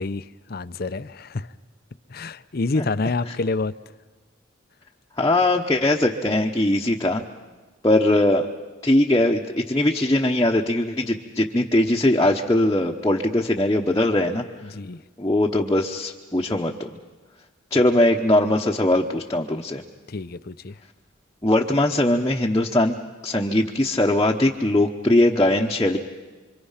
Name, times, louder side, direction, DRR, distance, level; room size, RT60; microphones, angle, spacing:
voice 1, 0.0-1.5 2.1-3.7 14.6-15.0 20.1-20.8, left 3 dB, 50° left, 14 dB, 0.7 m, -28 dB
voice 2, 5.2-7.2 7.8-8.5 8.8-14.4 15.2-16.9 17.7-19.8 21.4-23.0 23.2-26.0, left 1 dB, 20° left, -1 dB, 1.0 m, -20 dB
26.5 x 25.5 x 5.8 m, 1.3 s
head